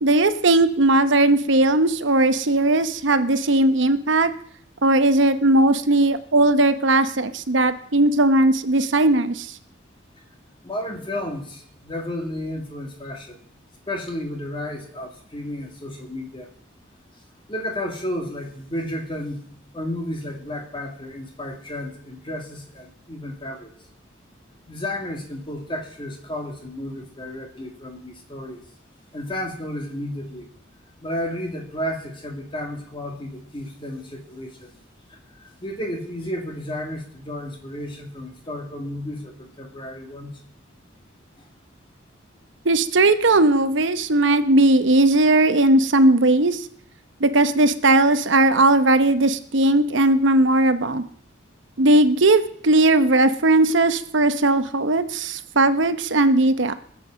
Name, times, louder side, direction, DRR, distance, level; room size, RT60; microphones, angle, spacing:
voice 1, 0.0-4.3 4.8-9.5 42.6-46.7 47.2-51.0 51.8-56.7, right 2 dB, 70° right, 11 dB, 0.9 m, -18 dB
voice 2, 10.6-13.5 13.9-16.5 17.5-19.5 19.7-23.7 24.7-28.6 29.1-30.5 31.0-34.8 35.1-40.4, left 1 dB, 25° left, 2 dB, 2.1 m, -32 dB
19.5 x 7.6 x 6.3 m, 0.63 s
head